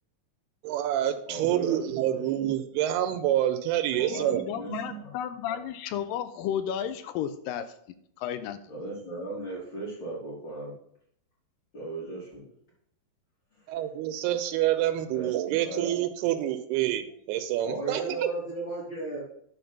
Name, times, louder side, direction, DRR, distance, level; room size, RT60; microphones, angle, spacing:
voice 1, 0.6-5.0 13.7-18.3, right 12 dB, 85° right, 2.6 m, -27 dB
voice 2, 1.3-2.2 3.9-5.1 5.5-5.6 8.7-10.7 11.7-12.4 13.5-13.8 15.1-15.3 15.6-15.9 17.6-19.2, right 2 dB, 35° left, 2.3 m, -37 dB
voice 3, 4.1-7.6 8.2-8.6, left 9 dB, 80° left, 2.1 m, -33 dB
10.0 x 3.9 x 5.8 m
omnidirectional pair, 4.4 m